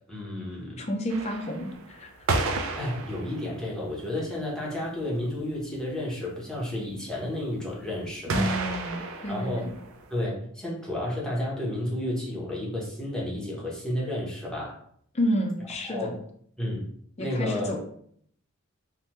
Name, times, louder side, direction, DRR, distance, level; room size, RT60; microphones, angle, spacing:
voice 1, 0.1-0.9 2.8-8.5 9.3-9.7 10.1-14.8 15.9-16.1 16.6-16.9 17.2-17.7, left 1 dB, 5° left, -5 dB, 0.8 m, -31 dB
voice 2, 0.8-2.1 8.3-9.7 15.1-16.2 17.2-17.8, equal, 30° left, 2 dB, 0.4 m, -30 dB
sound 1, 1.1-3.9 4.5-4.6 4.8-4.9 5.2-5.3 5.5-6.0 8.3-10.2, right 3 dB, 70° right, 0.4 m, -31 dB
3.2 x 2.1 x 2.9 m, 0.65 s
head